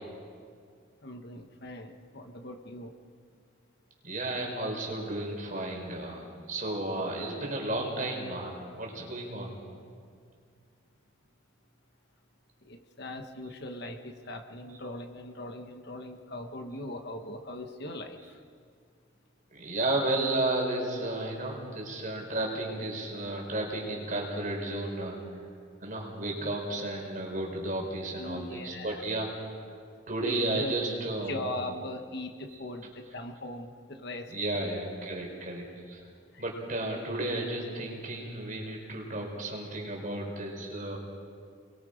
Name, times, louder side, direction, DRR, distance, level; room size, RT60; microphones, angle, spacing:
voice 1, 1.0-2.9 12.6-18.4 26.4-26.6 28.2-29.0 30.2-30.7 31.3-34.7 36.3-36.4, left 1 dB, 50° left, 5 dB, 1.3 m, -40 dB
voice 2, 4.0-9.5 19.5-25.2 25.8-29.3 30.1-31.5 34.3-36.0 36.4-41.0, right 2 dB, 40° right, 0 dB, 4.4 m, -33 dB
28.0 x 22.0 x 5.1 m, 2.2 s
head